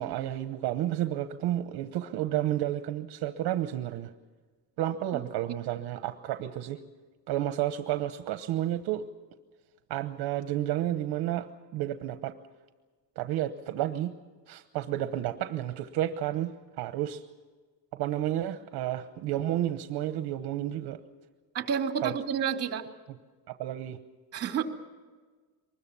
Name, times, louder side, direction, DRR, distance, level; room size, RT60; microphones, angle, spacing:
voice 1, 0.0-4.1 4.8-6.8 7.3-9.0 9.9-12.3 13.2-14.1 14.5-17.2 17.9-21.0 22.0-22.1 23.5-24.0, right 13 dB, 65° right, 9 dB, 1.1 m, -31 dB
voice 2, 21.5-22.9 24.3-24.6, right 7 dB, 35° right, 6 dB, 2.3 m, -30 dB
24.0 x 21.0 x 7.0 m, 1.4 s
cardioid pair, 165°, 41 cm